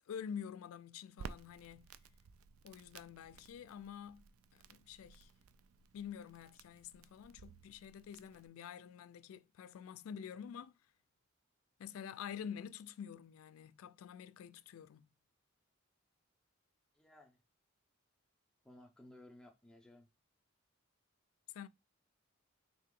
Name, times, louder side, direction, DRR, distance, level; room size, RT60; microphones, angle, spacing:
voice 1, 0.1-1.9 2.6-4.2 4.5-5.3 5.9-10.7 11.8-15.1 21.5-21.7, left 8 dB, 85° left, 0.3 m, -48 dB
Crackle, 1.2-8.5, right 6 dB, 90° right, 0.4 m, -55 dB
voice 2, 16.9-17.4 18.6-20.1, left 1 dB, 5° left, 0.5 m, -58 dB
3.7 x 2.8 x 3.7 m
head